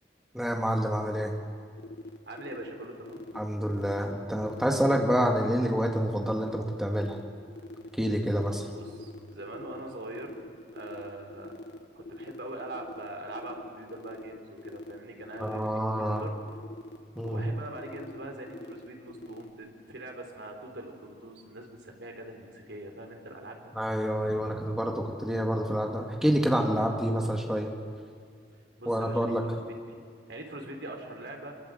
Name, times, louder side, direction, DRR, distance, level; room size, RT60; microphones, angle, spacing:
voice 1, 0.3-1.3 3.3-7.2 8.0-8.6 15.4-16.2 17.2-17.4 23.7-27.7 28.9-29.4, equal, 5° right, 1 dB, 2.1 m, -27 dB
sound 1, 1.8-19.5, left 1 dB, 70° left, 1.7 m, -44 dB
voice 2, 2.3-3.2 8.7-10.3 10.7-11.5 12.0-16.3 17.2-23.7 28.8-29.6 29.9-30.0 30.3-31.5, right 1 dB, 80° right, 2 dB, 4.1 m, -42 dB
25.5 x 23.0 x 8.0 m, 2.1 s
head